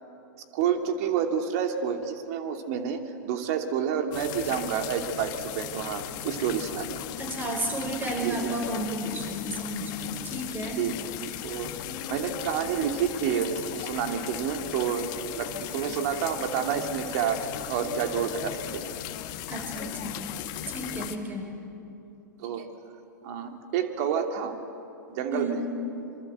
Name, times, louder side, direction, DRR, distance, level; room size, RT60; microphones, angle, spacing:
voice 1, 0.5-7.0 8.2-8.5 10.8-11.0 11.4-11.7 12.1-18.9 22.4-22.7 23.2-24.5 25.1-25.6, right 8 dB, 50° right, 5 dB, 2.7 m, -29 dB
sound 1, 4.1-21.2, left 12 dB, 45° left, 1.7 m, -37 dB
voice 2, 7.2-10.8 19.5-20.3 20.7-21.5 25.3-25.7, right 1 dB, 20° right, 3 dB, 5.3 m, -32 dB
26.5 x 24.0 x 8.1 m, 2.8 s
hypercardioid pair, 105°, 10 cm